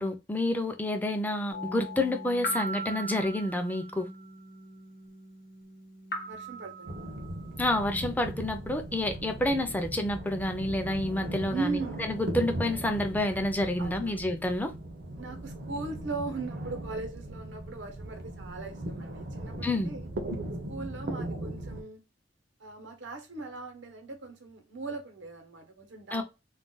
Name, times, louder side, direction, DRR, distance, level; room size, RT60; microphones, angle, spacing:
voice 1, 0.0-4.1 7.6-11.8 12.1-14.7 19.6-19.9 26.1-26.2, left 1 dB, 10° left, 0.4 m, -29 dB
sound 1, 1.5-8.0, right 1 dB, 55° left, 0.7 m, -40 dB
voice 2, 6.3-7.2 11.5-12.1 13.8-14.2 15.2-20.1 20.7-22.0 22.6-26.2, right 3 dB, 85° right, 0.9 m, -39 dB
sound 2, 6.9-21.8, right 1 dB, 60° right, 0.6 m, -38 dB
2.4 x 2.2 x 3.8 m
head